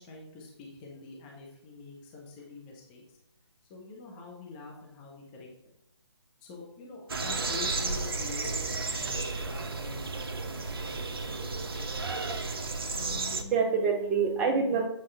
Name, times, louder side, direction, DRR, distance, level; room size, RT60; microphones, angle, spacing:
voice 1, 0.0-3.0 3.7-5.5 6.4-11.2 11.7-11.9 13.1-13.2, left 4 dB, 20° left, -1 dB, 1.2 m, -46 dB
sound 1, 7.1-13.4, right 3 dB, 55° right, 0.8 m, -33 dB
voice 2, 12.9-14.9, right 5 dB, 5° right, 3 dB, 0.4 m, -27 dB
8.1 x 4.8 x 3.5 m, 0.84 s
figure-of-eight pair, 145°, 15 cm